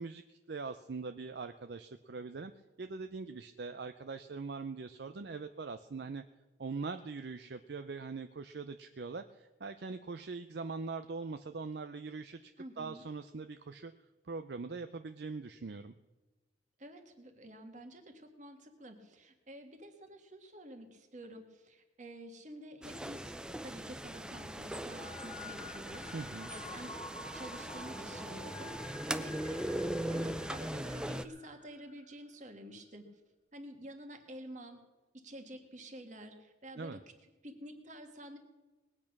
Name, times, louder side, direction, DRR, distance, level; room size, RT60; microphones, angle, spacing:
voice 1, 0.0-2.5 2.8-6.2 6.6-13.9 14.3-15.9 26.1-26.5 36.8-37.0, right 4 dB, 60° right, 9 dB, 0.5 m, -42 dB
voice 2, 12.6-13.0 16.8-27.0 27.3-33.0 33.5-34.8 35.1-38.4, equal, 40° right, 6 dB, 1.6 m, -49 dB
sound 1, 22.8-31.3, right 1 dB, 5° right, 0.4 m, -40 dB
sound 2, 24.9-32.2, left 2 dB, 25° left, 1.0 m, -50 dB
20.0 x 8.6 x 6.0 m, 1.2 s
head